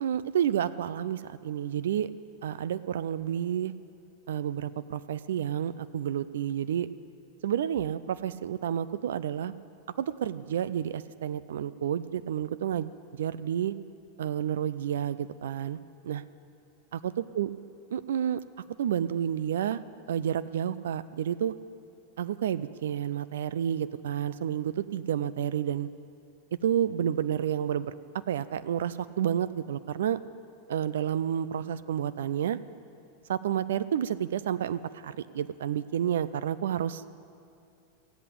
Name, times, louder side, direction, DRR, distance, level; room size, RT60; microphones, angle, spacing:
voice 1, 0.0-2.1 2.4-3.7 4.3-6.9 7.4-9.5 10.0-13.7 14.2-16.2 16.9-17.5 17.9-18.4 18.8-19.8 20.1-21.5 22.2-25.9 26.6-27.9 28.3-30.2 30.7-32.6 33.3-37.0, right 9 dB, 60° right, 15 dB, 0.3 m, -30 dB
15.0 x 8.3 x 8.4 m, 2.5 s
figure-of-eight pair, 90°, 0 cm